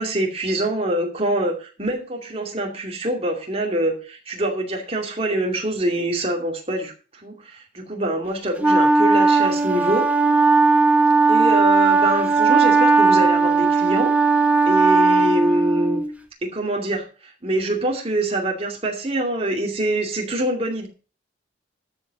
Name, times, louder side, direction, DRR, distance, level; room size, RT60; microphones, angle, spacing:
voice 1, 0.0-10.1 11.3-14.1 14.7-16.0 16.4-20.9, right 1 dB, 30° right, 1 dB, 2.4 m, -25 dB
Wind instrument woodwind instrument, 8.6-16.1, right 4 dB, 5° right, 0.9 m, -17 dB
13.0 x 5.1 x 7.0 m, 0.36 s
head